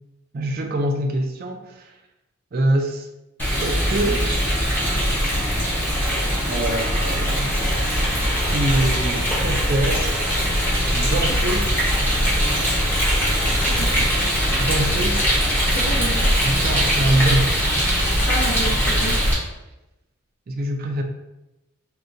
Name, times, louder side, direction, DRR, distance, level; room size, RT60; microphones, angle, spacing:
voice 1, 0.3-1.9 2.5-3.1 3.6-4.3 6.5-7.5 8.4-10.1 10.9-11.7 14.6-15.2 16.4-17.6 20.5-21.0, right 1 dB, 45° right, 3 dB, 0.3 m, -24 dB
Rain, 3.4-19.3, equal, 10° left, 0.7 m, -21 dB
voice 2, 13.4-14.3 15.7-16.3 18.3-19.1, equal, 90° left, -2 dB, 0.9 m, -30 dB
3.8 x 2.2 x 2.5 m, 0.94 s
head